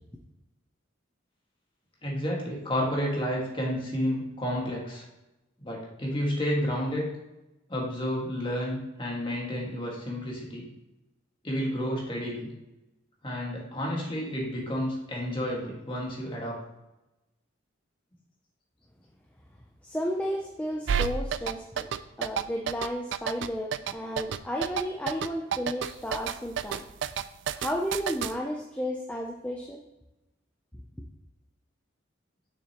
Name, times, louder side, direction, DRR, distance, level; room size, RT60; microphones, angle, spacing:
voice 1, 2.0-5.1 5.6-7.1 7.7-10.6 11.4-12.5 13.2-16.6, equal, 25° left, -3 dB, 1.7 m, -31 dB
voice 2, 19.8-21.9 22.2-26.8 27.6-29.8, equal, 5° left, 0 dB, 0.5 m, -33 dB
sound 1, 20.9-28.3, right 7 dB, 60° right, 0.3 m, -29 dB
6.6 x 6.5 x 2.9 m, 0.98 s
head